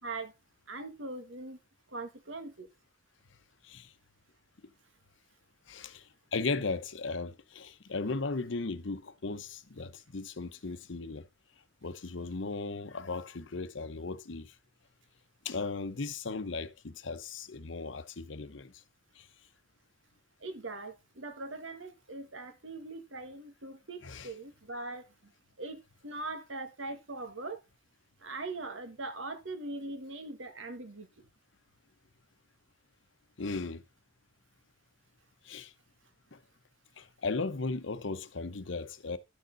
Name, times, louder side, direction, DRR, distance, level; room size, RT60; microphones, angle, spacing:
voice 1, 0.0-0.3 0.7-1.6 1.9-2.7 20.4-25.3 25.6-27.6 28.2-31.3, right 2 dB, 75° right, 1.8 m, -41 dB
voice 2, 5.7-11.3 11.8-14.5 15.4-18.7 19.2-19.3 24.0-24.3 33.4-33.8 35.4-35.7 36.3-36.4 37.0-39.2, left 3 dB, 70° left, 0.9 m, -36 dB
11.0 x 6.7 x 4.0 m
head